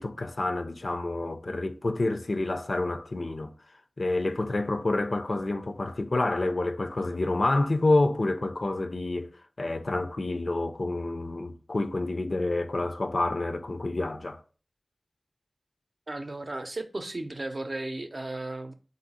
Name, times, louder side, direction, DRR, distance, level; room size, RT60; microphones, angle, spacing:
voice 1, 0.0-3.5 4.0-9.3 9.6-14.4, left 2 dB, 80° left, 0.4 m, -28 dB
voice 2, 16.1-18.7, right 2 dB, 65° right, 0.5 m, -35 dB
3.9 x 2.6 x 4.1 m
wide cardioid pair, 45°, 0 cm